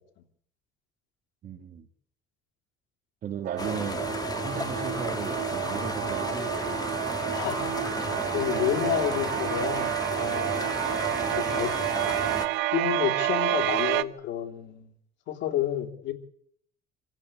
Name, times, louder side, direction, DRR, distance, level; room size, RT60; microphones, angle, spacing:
voice 1, 1.4-1.9 3.2-4.0 4.4-7.0, right 7 dB, 45° right, 2.9 m, -36 dB
sound 1, 3.4-14.0, right 14 dB, 80° right, 1.2 m, -29 dB
sound 2, 3.6-12.5, left 4 dB, 20° left, 2.3 m, -34 dB
voice 2, 7.3-8.0 8.3-10.7 11.2-11.7 12.7-14.9 15.3-16.1, left 11 dB, 75° left, 3.1 m, -30 dB
27.0 x 16.0 x 8.5 m
cardioid pair, 155°, 19 cm